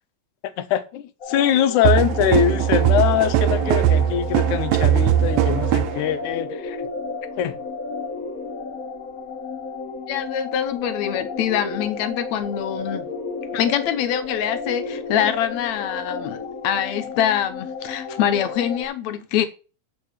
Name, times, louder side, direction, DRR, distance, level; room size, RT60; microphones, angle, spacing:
voice 1, 0.4-6.8 7.4-7.6, left 10 dB, 90° left, 2.3 m, -22 dB
sound 1, 1.2-18.8, left 4 dB, 35° left, 1.6 m, -32 dB
sound 2, 1.8-6.0, right 11 dB, 75° right, 1.8 m, -20 dB
voice 2, 10.1-13.1 13.5-19.5, left 9 dB, 75° left, 2.2 m, -24 dB
7.5 x 5.8 x 7.4 m
omnidirectional pair, 3.4 m